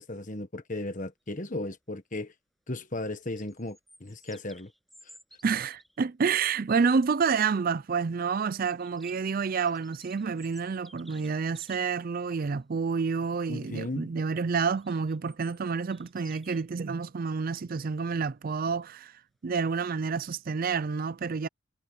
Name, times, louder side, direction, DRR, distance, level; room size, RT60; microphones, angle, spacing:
voice 1, 0.0-2.3 2.7-4.7 13.5-14.1, left 2 dB, 35° left, 1.4 m, -35 dB
sound 1, 3.2-6.0 8.8-11.8 14.8-16.6 20.2-20.4, equal, ahead, 7.6 m, -56 dB
voice 2, 5.4-21.5, right 5 dB, 40° right, 0.4 m, -29 dB
head